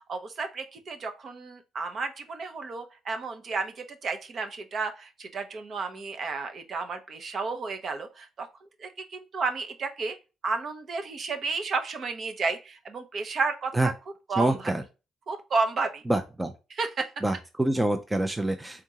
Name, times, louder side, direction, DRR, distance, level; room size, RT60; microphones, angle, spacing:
voice 1, 0.1-8.5 8.8-10.2 10.4-13.9 14.3-14.5 15.3-16.0 16.8-17.0, right 4 dB, 55° right, 6 dB, 0.9 m, -32 dB
voice 2, 14.4-14.8 16.1-16.5 17.2-18.8, right 1 dB, 15° right, 6 dB, 0.6 m, -26 dB
3.7 x 3.5 x 2.8 m, 0.29 s
cardioid pair, 90°, 0 cm